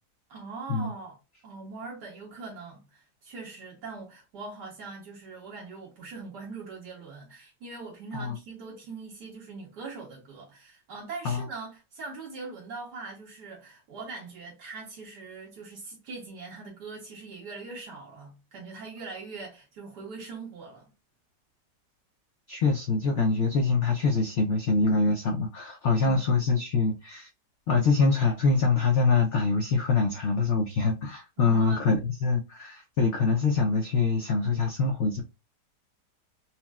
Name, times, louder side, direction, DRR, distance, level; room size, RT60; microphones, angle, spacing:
voice 1, 0.3-1.2 1.4-20.9 25.8-26.2 31.4-31.8, right 4 dB, 75° right, 1.5 m, -42 dB
voice 2, 22.5-27.3 27.7-35.2, left 4 dB, 75° left, 0.6 m, -24 dB
4.2 x 2.0 x 2.2 m
omnidirectional pair, 1.8 m